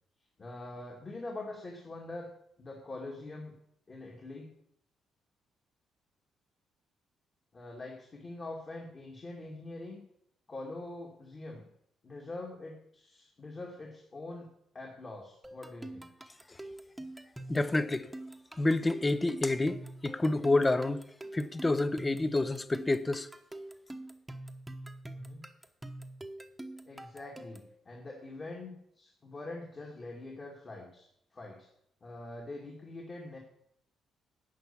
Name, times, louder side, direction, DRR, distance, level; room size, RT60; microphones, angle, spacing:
voice 1, 0.4-2.3 2.6-3.5 3.9-4.5 7.5-10.0 10.5-11.7 12.0-14.5 14.7-16.1 25.1-25.4 26.9-31.7 32.0-33.4, left 2 dB, 35° left, 2.2 m, -44 dB
sound 1, 15.4-27.7, right 1 dB, 10° right, 1.1 m, -45 dB
voice 2, 17.5-18.1 18.6-21.0 21.3-23.3, left 2 dB, 20° left, 0.7 m, -28 dB
11.0 x 5.6 x 8.5 m
cardioid pair, 90°, 0 cm